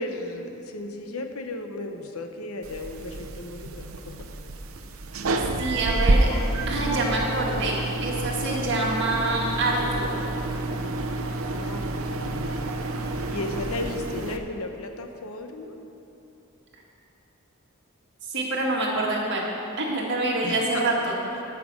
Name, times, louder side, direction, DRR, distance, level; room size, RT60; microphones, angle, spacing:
voice 1, 0.0-4.3 11.5-12.5 13.0-15.8 20.4-21.4, left 2 dB, 90° left, 5 dB, 0.9 m, -35 dB
sound 1, 2.6-14.4, right 2 dB, 75° right, 0.7 m, -28 dB
voice 2, 5.6-6.3 6.7-10.1 18.3-19.5 19.8-21.2, right 2 dB, 55° right, -2 dB, 1.8 m, -26 dB
13.5 x 5.9 x 6.2 m, 2.9 s
head